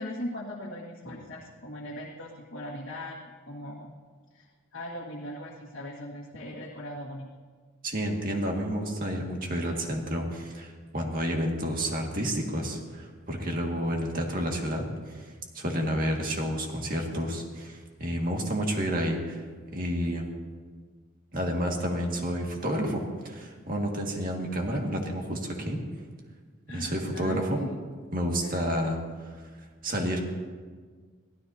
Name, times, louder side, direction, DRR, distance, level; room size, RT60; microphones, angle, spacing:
voice 1, 0.0-3.2 3.5-3.9 4.3-7.3 26.7-27.8 28.4-28.6, left 1 dB, 75° left, -4 dB, 1.7 m, -39 dB
voice 2, 7.8-15.2 15.5-19.4 19.7-20.2 21.3-25.8 26.7-27.7 28.1-29.0 29.8-30.2, equal, 45° right, 1 dB, 2.0 m, -30 dB
22.5 x 15.5 x 2.8 m, 1.5 s
head